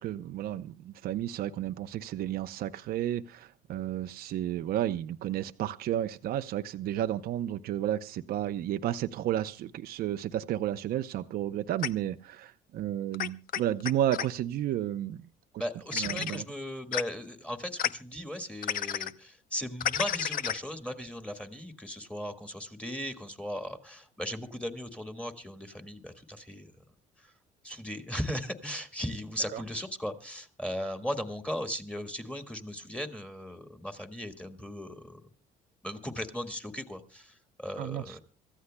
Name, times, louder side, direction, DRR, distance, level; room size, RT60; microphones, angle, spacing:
voice 1, 0.0-15.3 15.5-15.6 16.0-16.4 29.5-29.6 37.8-38.2, right 12 dB, 65° right, 0.7 m, -32 dB
sound 1, 11.8-11.9 13.1-14.3 15.9-16.4 16.9-17.0 17.8-17.9 18.6-19.1 19.8-20.6, left 10 dB, 55° left, 0.7 m, -31 dB
voice 2, 15.6-26.7 27.2-27.3 27.6-35.2 35.8-38.2, equal, 5° left, 1.8 m, -37 dB
26.5 x 14.5 x 2.2 m
cardioid pair, 110°, 17 cm